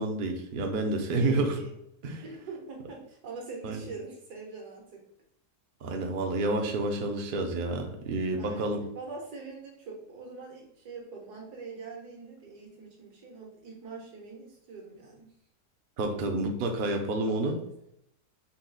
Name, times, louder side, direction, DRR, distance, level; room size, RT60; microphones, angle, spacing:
voice 1, 0.0-1.6 2.0-2.2 3.6-3.8 5.8-8.8 16.0-17.6, right 2 dB, 60° right, 3 dB, 0.5 m, -29 dB
voice 2, 1.2-1.7 2.2-5.0 8.4-15.3 17.3-17.7, right 4 dB, 80° right, 0 dB, 1.6 m, -43 dB
4.2 x 2.4 x 3.8 m, 0.74 s
omnidirectional pair, 1.7 m